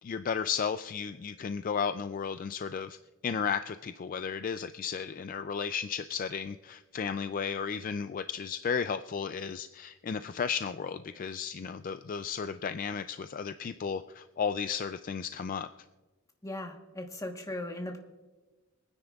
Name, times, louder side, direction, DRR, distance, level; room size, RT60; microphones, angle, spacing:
voice 1, 0.0-3.0 3.2-15.7, left 6 dB, 40° left, 10 dB, 0.3 m, -34 dB
voice 2, 16.4-18.0, left 1 dB, 15° left, 3 dB, 1.2 m, -38 dB
26.0 x 9.7 x 2.4 m, 1.2 s
head